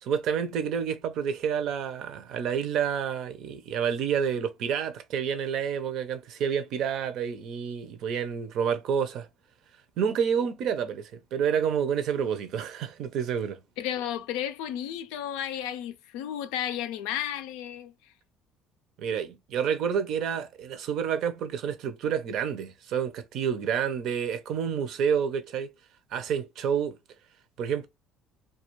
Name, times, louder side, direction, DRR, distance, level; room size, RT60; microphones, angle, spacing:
voice 1, 0.0-9.3 10.0-13.6 19.0-25.7 26.1-27.0 27.6-27.9, right 7 dB, 65° right, 0.5 m, -29 dB
voice 2, 13.8-17.9, left 10 dB, 85° left, 0.4 m, -33 dB
2.3 x 2.3 x 3.0 m
cardioid pair, 110°, 0 cm